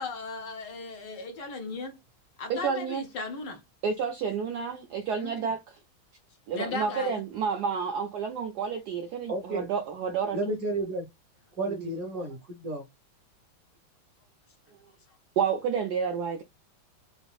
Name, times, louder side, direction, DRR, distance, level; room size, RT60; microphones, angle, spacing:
voice 1, 0.0-2.0 2.4-3.6 5.1-5.5 6.5-7.2, left 3 dB, 60° left, 1.4 m, -36 dB
voice 2, 2.5-3.0 3.8-5.8 6.5-10.4 11.7-11.9 15.4-16.4, right 6 dB, 90° right, 0.9 m, -30 dB
voice 3, 9.3-9.6 10.3-11.1 11.6-12.8, right 2 dB, 60° right, 1.0 m, -31 dB
5.1 x 2.6 x 2.3 m
omnidirectional pair, 2.4 m